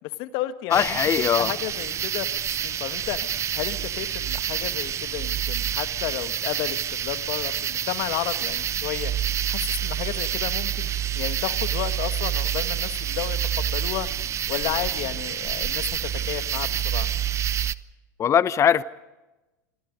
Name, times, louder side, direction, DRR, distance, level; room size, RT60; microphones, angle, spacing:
voice 1, 0.0-1.0 1.4-2.3 2.6-9.1 9.5-10.9 11.1-15.8 16.3-17.1, left 15 dB, 55° left, 10 dB, 1.7 m, -32 dB
voice 2, 0.7-1.5 18.2-18.8, left 9 dB, 30° left, 17 dB, 0.8 m, -20 dB
sound 1, 0.7-17.7, right 9 dB, 30° right, 0.7 m, -28 dB
28.5 x 23.5 x 5.3 m, 1.1 s
hypercardioid pair, 95°, 10 cm